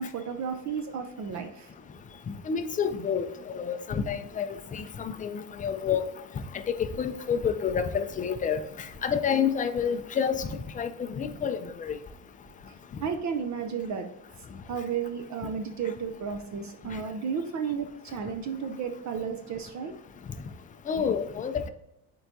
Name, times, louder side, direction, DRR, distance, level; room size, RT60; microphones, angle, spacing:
voice 1, 0.0-1.7 13.0-14.1 14.7-19.9, right 6 dB, 45° right, 6 dB, 0.6 m, -33 dB
voice 2, 2.5-4.5 4.7-6.0 6.8-8.6 9.0-10.5 10.8-12.0 20.9-21.7, left 7 dB, 20° left, 9 dB, 0.3 m, -29 dB
7.8 x 4.6 x 2.6 m, 0.86 s
cardioid pair, 140°, 41 cm